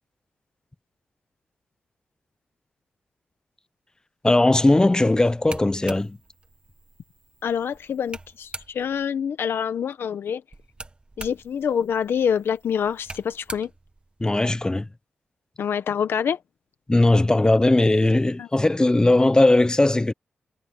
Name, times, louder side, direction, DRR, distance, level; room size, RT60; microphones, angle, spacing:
voice 1, 4.2-6.2 14.2-14.9 16.9-20.1, left 2 dB, 20° left, 0.9 m, -18 dB
sound 1, 5.3-9.1 10.5-14.7, right 2 dB, 25° right, 2.0 m, -43 dB
voice 2, 7.4-10.4 11.2-13.7 15.6-16.4 18.4-18.5, left 7 dB, 80° left, 1.3 m, -26 dB
cardioid pair, 65°, 4 cm